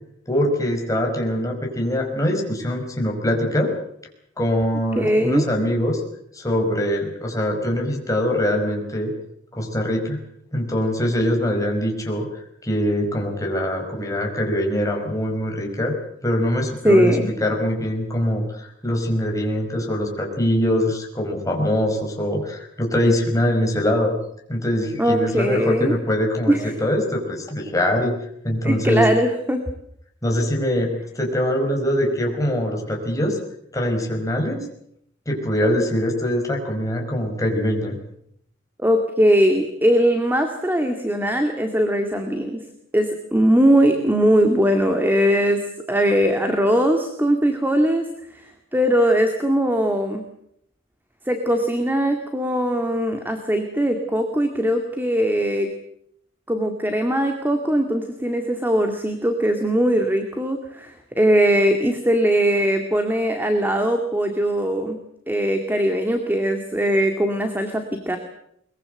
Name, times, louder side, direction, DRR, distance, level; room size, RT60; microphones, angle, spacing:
voice 1, 0.3-3.7 4.4-6.0 6.3-9.1 9.5-10.2 10.5-12.3 12.6-15.9 16.2-24.1 24.5-28.2 28.4-29.1 30.2-33.4 33.7-34.6 35.3-38.0, equal, 15° left, 1 dB, 5.2 m, -23 dB
voice 2, 5.0-5.5 16.8-17.3 25.0-26.0 26.5-26.7 28.6-29.6 38.8-42.6 42.9-45.6 45.9-48.0 48.4-48.5 48.7-50.3 51.3-55.7 56.5-65.0 65.3-68.2, equal, 10° right, 5 dB, 2.1 m, -20 dB
22.5 x 22.0 x 7.9 m, 0.72 s
head